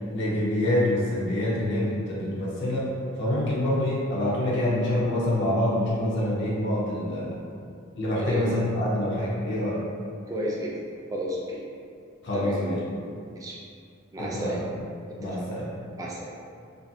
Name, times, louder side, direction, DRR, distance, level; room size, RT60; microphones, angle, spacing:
voice 1, 0.1-2.9 3.2-7.3 8.0-9.8 12.2-12.8 14.2-14.6 15.2-15.7, left 1 dB, 55° left, -6 dB, 0.5 m, -26 dB
voice 2, 10.3-10.7 11.1-11.6 12.3-12.8 13.3-13.6 14.1-14.6 15.3-15.4 16.0-16.3, right 1 dB, 15° right, -4 dB, 0.3 m, -32 dB
2.6 x 2.5 x 2.6 m, 2.4 s
head